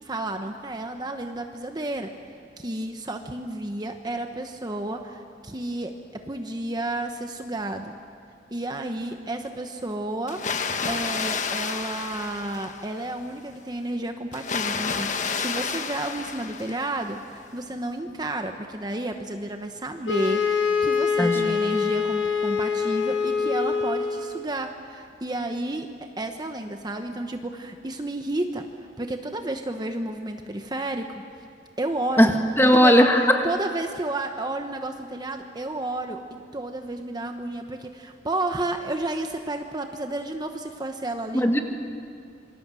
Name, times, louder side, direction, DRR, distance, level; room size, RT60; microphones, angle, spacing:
voice 1, 0.0-2.1 2.6-8.0 8.5-25.9 26.2-28.6 29.0-31.1 31.8-32.3 32.6-33.1 33.4-36.2 36.5-41.6, right 1 dB, 25° right, 5 dB, 1.1 m, -31 dB
Water, 10.3-13.1 14.3-17.1, left 5 dB, 45° left, 1.3 m, -30 dB
sound 1, 20.1-24.5, left 5 dB, 90° left, 1.8 m, -25 dB
voice 2, 21.2-21.6 32.2-33.4 41.3-41.6, equal, 15° left, 4 dB, 1.9 m, -18 dB
27.0 x 23.5 x 7.7 m, 2.3 s
head